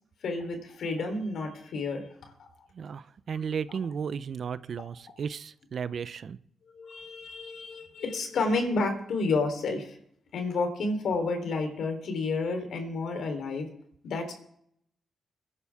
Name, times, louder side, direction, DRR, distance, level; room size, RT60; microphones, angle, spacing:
voice 1, 0.2-2.1 2.4-2.5 6.7-10.0 10.3-13.7 14.0-14.3, left 3 dB, 75° left, 5 dB, 3.7 m, -30 dB
voice 2, 2.7-6.4, right 6 dB, 60° right, 15 dB, 0.7 m, -34 dB
22.0 x 11.0 x 3.6 m, 0.69 s
cardioid pair, 75°, 0 cm